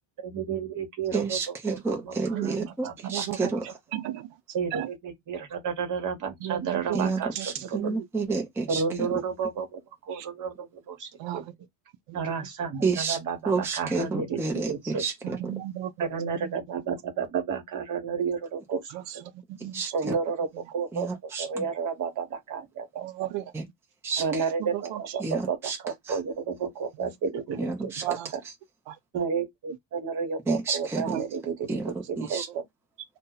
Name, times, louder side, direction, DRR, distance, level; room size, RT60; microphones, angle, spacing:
voice 1, 0.2-1.4 1.7-2.2 2.4-3.2 4.5-7.9 8.7-11.4 12.1-15.0 16.0-19.2 19.9-21.1 21.4-23.3 24.2-28.2 29.1-31.7 32.1-32.6, right 6 dB, 40° right, 1.1 m, -32 dB
voice 2, 1.1-3.7 6.9-9.1 12.8-13.2 13.5-15.6 19.7-20.1 20.9-21.7 23.5-23.7 24.0-24.4 25.2-25.8 26.1-26.2 27.6-28.1 30.5-31.2 31.7-32.5, right 4 dB, 5° right, 0.5 m, -30 dB
voice 3, 3.1-3.5 3.9-4.3 4.7-4.9 6.4-8.0 9.0-9.2 10.1-10.3 11.2-11.4 12.1-12.2 15.2-15.9 16.4-16.5 18.9-19.8 23.0-23.4 24.6-25.0 28.0-28.3 28.9-29.0 31.0-31.2 32.2-32.4, right 13 dB, 75° right, 0.5 m, -34 dB
2.7 x 2.2 x 3.7 m
cardioid pair, 155°, 45 cm